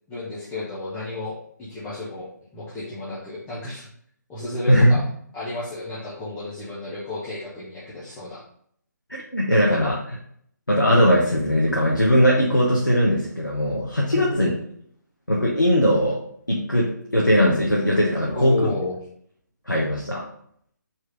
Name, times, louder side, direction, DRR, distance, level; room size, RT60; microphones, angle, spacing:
voice 1, 0.1-3.9 4.3-5.0 5.3-8.4 9.8-9.9 14.1-14.6 18.2-19.0, left 2 dB, 10° left, -11 dB, 1.4 m, -32 dB
voice 2, 4.7-5.0 9.1-10.0 10.7-14.5 15.3-16.2 16.5-18.7 19.7-20.3, equal, 90° left, -3 dB, 1.4 m, -19 dB
4.7 x 4.4 x 5.0 m, 0.66 s
figure-of-eight pair, 145°, 10 cm